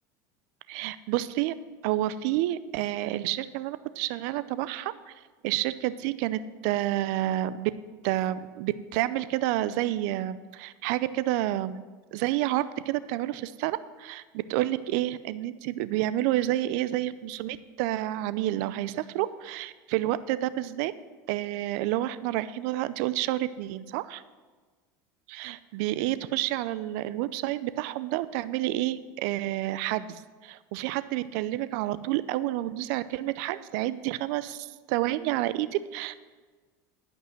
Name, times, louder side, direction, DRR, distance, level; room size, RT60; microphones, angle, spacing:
voice 1, 0.7-1.5 1.8-5.1 5.4-7.7 8.0-11.8 12.1-20.9 21.3-24.2 25.3-36.2, right 15 dB, 70° right, 15 dB, 0.5 m, -29 dB
12.0 x 5.4 x 7.7 m, 1.4 s
supercardioid pair, 120°, 9 cm